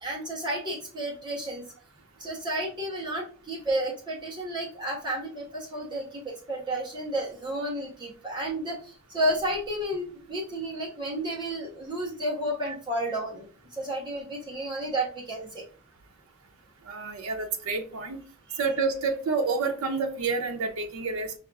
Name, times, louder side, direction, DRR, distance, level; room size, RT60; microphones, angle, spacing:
voice 1, 0.0-1.6 2.2-15.6, right 1 dB, 20° right, -3 dB, 0.8 m, -32 dB
voice 2, 16.8-18.2 18.6-21.3, right 4 dB, 90° right, 5 dB, 0.6 m, -29 dB
5.2 x 2.4 x 2.3 m, 0.39 s
head